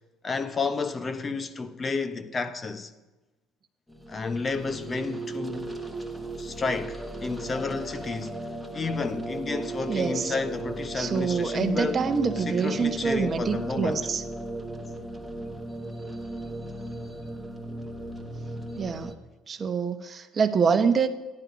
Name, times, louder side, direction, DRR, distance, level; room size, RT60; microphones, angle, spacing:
voice 1, 0.2-2.9 4.1-5.7 6.4-8.4 8.7-12.0 12.5-14.1, left 4 dB, 25° left, 0.9 m, -31 dB
sound 1, 3.9-19.1, right 2 dB, 5° left, 1.3 m, -36 dB
voice 2, 9.9-10.3 10.9-14.2 18.8-19.1 19.5-21.1, right 5 dB, 30° right, 1.0 m, -26 dB
14.5 x 11.0 x 5.1 m
cardioid pair, 130°, 0 cm